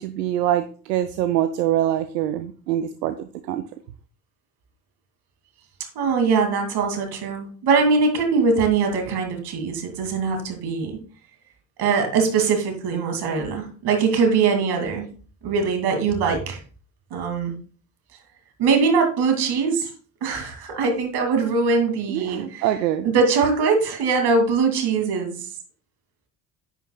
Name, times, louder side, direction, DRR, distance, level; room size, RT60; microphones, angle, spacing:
voice 1, 0.0-3.6 22.1-23.1, right 12 dB, 75° right, 11 dB, 0.6 m, -24 dB
voice 2, 5.9-11.0 11.8-15.1 15.4-16.6 17.1-17.5 18.6-19.9 20.2-22.7 23.0-25.4, right 4 dB, 50° right, 4 dB, 2.6 m, -22 dB
9.8 x 9.2 x 2.3 m, 0.39 s
figure-of-eight pair, 55°, 50 cm